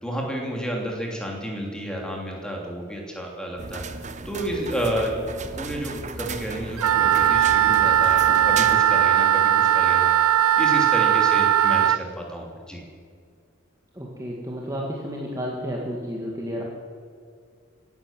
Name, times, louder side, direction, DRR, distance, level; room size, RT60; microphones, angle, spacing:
voice 1, 0.0-5.2 5.5-12.8, equal, 5° left, -1 dB, 2.9 m, -31 dB
sound 1, 3.6-8.8, right 4 dB, 35° right, 0.8 m, -35 dB
Wind instrument woodwind instrument, 6.8-12.0, right 10 dB, 80° right, 0.4 m, -19 dB
voice 2, 13.9-16.6, equal, 15° right, -3 dB, 1.9 m, -31 dB
17.5 x 11.0 x 7.4 m, 2.2 s
head